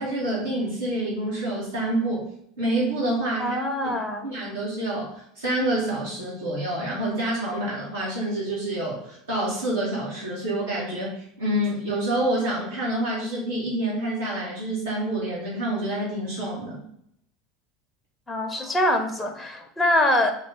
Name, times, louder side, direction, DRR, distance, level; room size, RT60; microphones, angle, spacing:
voice 1, 0.0-2.2 2.6-3.6 3.8-3.9 4.2-16.8, right 1 dB, 75° right, -8 dB, 1.1 m, -27 dB
voice 2, 3.4-4.3 18.3-20.3, left 1 dB, 10° left, 3 dB, 0.6 m, -24 dB
3.3 x 2.9 x 4.3 m, 0.73 s
figure-of-eight pair, 75°, 0 cm